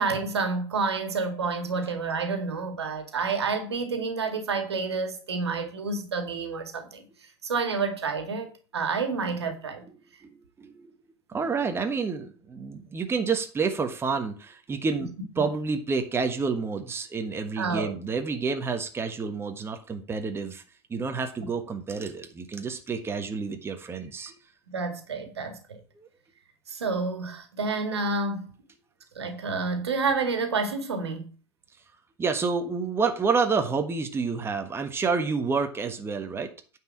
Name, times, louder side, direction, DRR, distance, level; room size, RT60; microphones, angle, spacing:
voice 1, 0.0-7.1 7.4-9.8 15.4-15.5 17.5-17.9 24.7-25.8 26.7-28.5 29.2-31.3, right 4 dB, 75° right, 2.0 m, -29 dB
voice 2, 10.2-10.9 11.3-20.6 20.9-24.3 26.0-26.1 32.2-36.5, right 5 dB, 15° right, 1.3 m, -29 dB
9.4 x 4.8 x 7.5 m
figure-of-eight pair, 85°, 14 cm